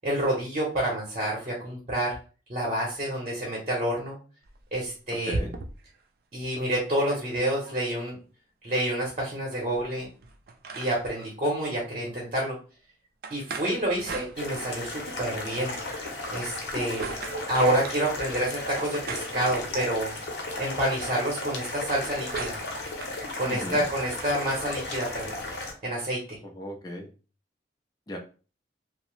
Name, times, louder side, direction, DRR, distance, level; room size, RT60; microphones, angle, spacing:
voice 1, 0.0-2.1 2.5-4.2 4.7-5.4 6.3-8.2 8.6-10.1 10.8-12.6 13.3-15.7 16.3-17.0 17.5-20.1 20.6-22.6 23.4-25.3 25.8-26.4, right 1 dB, 40° right, -3 dB, 0.8 m, -28 dB
sound 1, 4.4-6.0 6.4-6.5 6.7-7.8 9.4-11.3 13.2-14.9 16.2-18.1 18.8-20.2 21.7-23.2, right 3 dB, 55° right, 0.4 m, -39 dB
sound 2, 14.4-25.7, left 2 dB, 65° left, 0.7 m, -35 dB
voice 2, 23.4-23.8 26.4-27.1 28.1-28.2, equal, 20° left, 1 dB, 0.4 m, -36 dB
2.8 x 2.0 x 3.1 m, 0.36 s
head